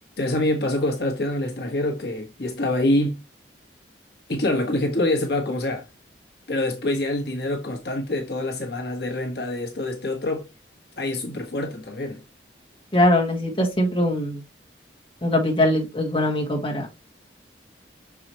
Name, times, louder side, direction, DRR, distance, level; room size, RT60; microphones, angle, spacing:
voice 1, 0.2-3.2 4.3-5.8 6.5-10.4 11.0-12.2, left 1 dB, 60° left, 1.3 m, -25 dB
voice 2, 12.9-14.4 15.2-16.9, left 1 dB, 30° left, 1.8 m, -21 dB
6.5 x 4.8 x 3.0 m
head